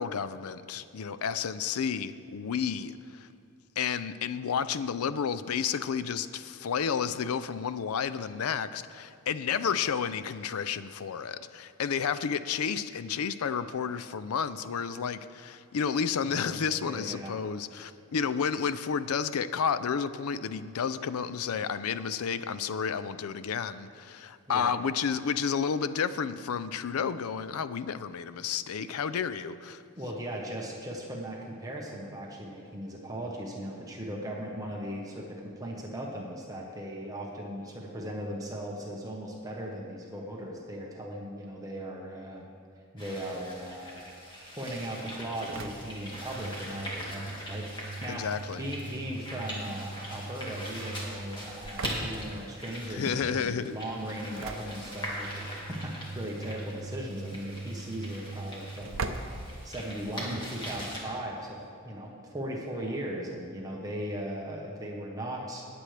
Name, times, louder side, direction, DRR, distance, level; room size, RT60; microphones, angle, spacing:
voice 1, 0.0-3.3 3.8-29.8 48.1-48.6 52.9-53.8, left 6 dB, 80° left, 0.4 m, -31 dB
voice 2, 16.2-17.3 24.5-24.7 30.0-42.4 42.9-44.0 44.5-48.3 48.6-59.0 59.3-61.6 61.8-65.7, right 1 dB, 15° right, 1.1 m, -38 dB
sound 1, 43.0-61.0, equal, 20° left, 1.9 m, -41 dB
Engine / Slam, 45.1-60.3, right 3 dB, 60° right, 0.6 m, -41 dB
19.0 x 7.8 x 3.3 m
head